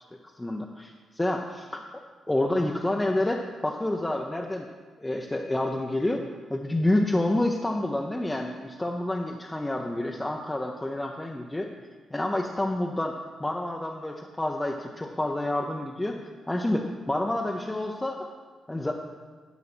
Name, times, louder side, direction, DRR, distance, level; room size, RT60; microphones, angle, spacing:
voice 1, 0.4-0.9 1.2-1.4 1.7-1.8 2.3-4.7 5.0-6.2 6.5-11.7 12.1-13.1 13.4-18.3 18.7-18.9, left 1 dB, 15° left, 1 dB, 0.7 m, -28 dB
11.0 x 5.4 x 6.1 m, 1.4 s
cardioid pair, 95°, 0 cm